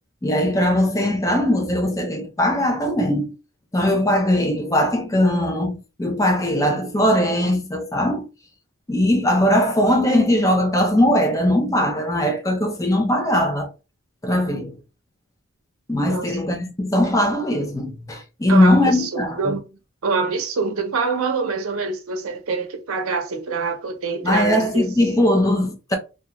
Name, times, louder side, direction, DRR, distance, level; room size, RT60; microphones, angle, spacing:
voice 1, 0.2-3.3 3.7-8.3 8.9-13.7 14.2-14.8 15.9-19.5 24.2-26.0, left 1 dB, 15° left, 0.4 m, -20 dB
voice 2, 18.5-19.6 20.0-24.8, right 4 dB, 70° right, 0.6 m, -25 dB
2.3 x 2.2 x 2.9 m
head